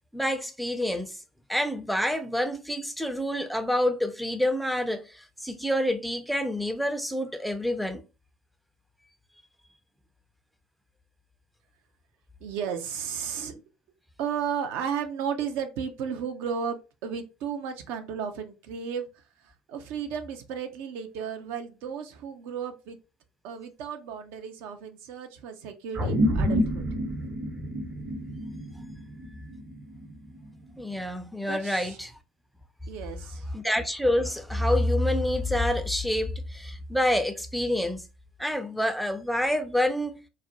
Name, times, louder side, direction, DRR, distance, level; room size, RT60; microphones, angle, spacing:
voice 1, 0.1-1.2 1.5-8.0 13.4-13.6 30.8-32.2 33.5-38.0 38.4-40.1, left 1 dB, ahead, 0.4 m, -27 dB
voice 2, 12.4-13.5 14.2-23.0 23.4-26.9 31.5-32.0 32.9-33.5, right 7 dB, 60° right, 0.5 m, -34 dB
sound 1, 26.0-30.7, equal, 35° right, 0.9 m, -29 dB
2.4 x 2.0 x 2.7 m
figure-of-eight pair, 60°, 4 cm